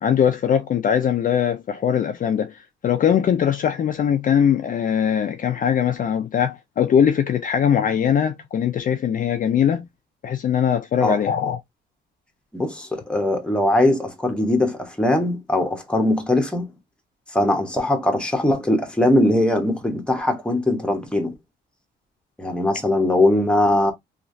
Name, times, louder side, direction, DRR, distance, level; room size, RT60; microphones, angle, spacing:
voice 1, 0.0-9.8 10.2-11.6, left 8 dB, 45° left, 0.4 m, -21 dB
voice 2, 12.5-16.7 17.3-21.3 22.4-23.9, left 1 dB, 5° left, 0.9 m, -20 dB
3.1 x 2.4 x 2.6 m
cardioid pair, 90°, 20 cm